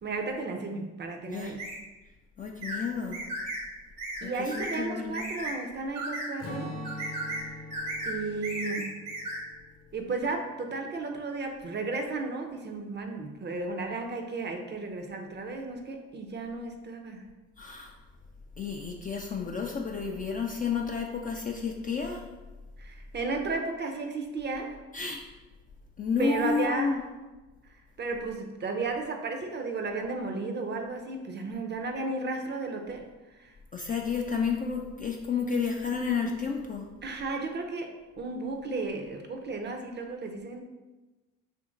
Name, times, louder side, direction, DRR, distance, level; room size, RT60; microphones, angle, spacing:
voice 1, 0.0-1.6 4.2-6.7 8.1-9.0 9.9-17.2 22.8-24.8 26.2-26.9 28.0-33.1 33.4-33.5 37.0-40.6, right 3 dB, 30° right, 4 dB, 0.6 m, -34 dB
sound 1, 1.6-1.8 2.6-2.8 3.1-3.6 4.0-4.2 4.5-4.8 5.1-5.5 5.9-6.3 6.8-7.4 7.7-8.2 8.4-9.4, right 1 dB, 70° right, 1.2 m, -35 dB
voice 2, 2.4-3.2 4.2-5.1 17.6-17.9 18.6-22.2 24.9-25.2 26.0-27.0 33.7-36.9, left 5 dB, 25° left, 1 dB, 0.3 m, -31 dB
Strum, 6.4-11.1, left 1 dB, 45° left, 0.8 m, -44 dB
2.8 x 2.6 x 3.7 m, 1.2 s
hypercardioid pair, 60°, 36 cm